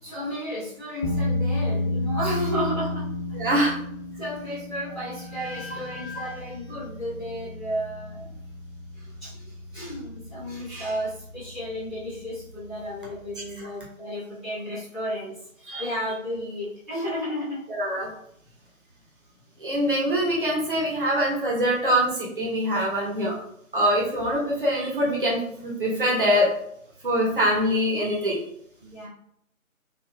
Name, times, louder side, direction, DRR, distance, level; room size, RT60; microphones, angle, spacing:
voice 1, 0.0-3.0 3.5-3.7 4.2-8.3 8.9-17.6 28.8-29.1, equal, ahead, -24 dB, 0.7 m, -33 dB
sound 1, 1.0-13.5, left 2 dB, 35° left, 0.6 m, -33 dB
voice 2, 3.3-3.7 15.7-15.8 17.7-18.1 19.6-23.3 23.7-26.5 27.0-28.4, equal, 40° right, -4 dB, 1.2 m, -24 dB
4.5 x 2.8 x 2.4 m, 0.71 s
figure-of-eight pair, 160°, 42 cm